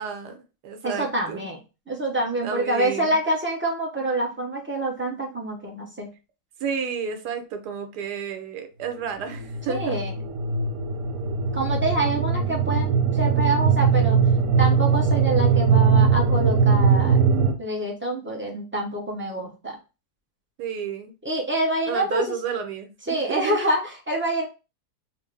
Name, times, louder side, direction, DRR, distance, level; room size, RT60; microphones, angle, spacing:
voice 1, 0.0-1.5 2.4-3.1 6.6-10.0 20.6-21.2 21.9-23.6, right 6 dB, 85° right, 6 dB, 1.3 m, -31 dB
voice 2, 0.8-1.6 1.9-6.1 9.7-10.1 11.5-14.2 14.6-17.2 17.6-19.8 21.2-22.3 23.1-24.5, right 1 dB, 15° right, -1 dB, 0.5 m, -26 dB
sound 1, 9.3-17.5, right 5 dB, 70° right, 1.0 m, -20 dB
4.2 x 2.1 x 3.3 m, 0.30 s
omnidirectional pair, 1.7 m